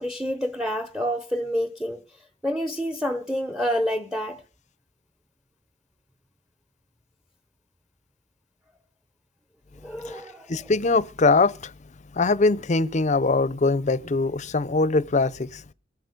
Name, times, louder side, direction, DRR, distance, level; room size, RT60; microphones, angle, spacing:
voice 1, 0.0-2.0 2.4-4.4 9.8-10.7, equal, 5° right, 0.8 m, -28 dB
voice 2, 10.5-11.7 12.1-15.6, left 3 dB, 40° left, 0.6 m, -22 dB
23.0 x 8.1 x 5.1 m
head